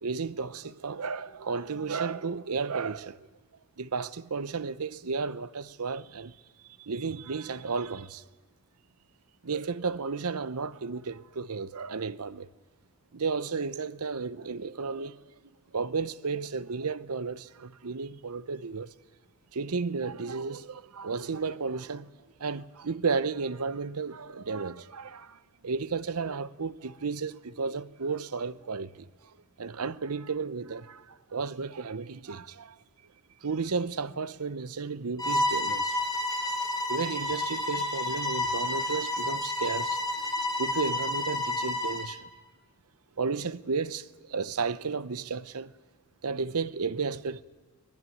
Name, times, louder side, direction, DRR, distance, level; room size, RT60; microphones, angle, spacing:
voice 1, 0.0-3.2 3.8-6.4 6.8-8.2 9.4-12.5 13.1-15.2 15.7-18.9 19.5-22.1 22.4-29.1 29.6-32.8 33.4-36.0 36.9-40.0 40.4-42.3 43.2-45.7 46.2-47.4, right 4 dB, 75° right, 0.8 m, -33 dB
Bowed string instrument, 35.2-42.1, left 2 dB, 15° left, 2.6 m, -30 dB
22.5 x 20.0 x 9.3 m
head